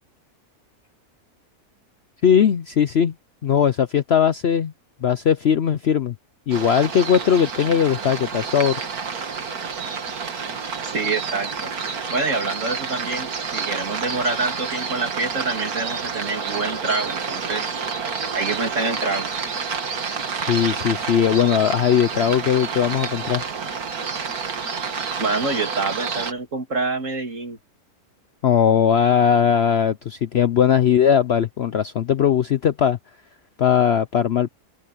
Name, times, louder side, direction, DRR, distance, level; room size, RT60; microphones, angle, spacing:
voice 1, 2.2-3.1 3.4-4.7 5.0-6.1 6.5-8.8 20.3-23.4 28.4-33.0 33.6-34.5, left 8 dB, 55° left, 0.7 m, -19 dB
sound 1, 6.5-26.3, right 5 dB, 75° right, 2.2 m, -29 dB
voice 2, 10.8-11.7 12.1-17.7 18.3-19.3 25.2-27.6, right 3 dB, 55° right, 3.1 m, -26 dB
open air
omnidirectional pair, 1.6 m